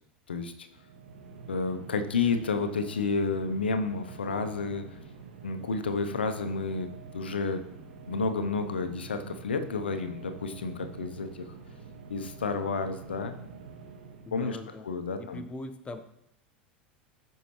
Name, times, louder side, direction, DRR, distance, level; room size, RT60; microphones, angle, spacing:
sound 1, 0.7-14.5, right 4 dB, 75° right, 1.6 m, -47 dB
voice 1, 1.5-5.0 5.4-6.9 7.1-7.6 8.1-11.5 12.1-13.3 14.3-14.6 14.8-15.4, left 4 dB, 80° left, 7 dB, 0.7 m, -30 dB
voice 2, 14.3-14.9 15.2-16.0, left 2 dB, 20° left, 8 dB, 0.8 m, -41 dB
14.0 x 5.5 x 3.1 m, 0.78 s
figure-of-eight pair, 80°, 6 cm